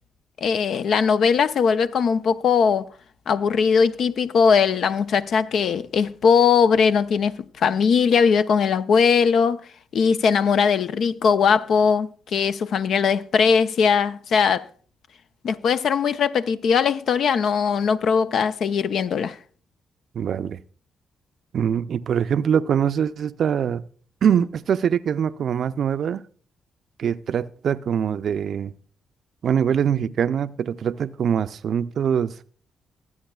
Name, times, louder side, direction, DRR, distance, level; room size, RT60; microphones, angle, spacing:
voice 1, 0.4-2.9 3.3-9.6 9.9-14.7 15.4-19.4, left 6 dB, 70° left, 0.5 m, -20 dB
voice 2, 20.1-20.6 21.5-23.8 24.2-26.2 27.0-28.7 29.4-32.3, right 8 dB, 65° right, 0.4 m, -23 dB
23.0 x 8.7 x 2.3 m
hypercardioid pair, 50°, 0 cm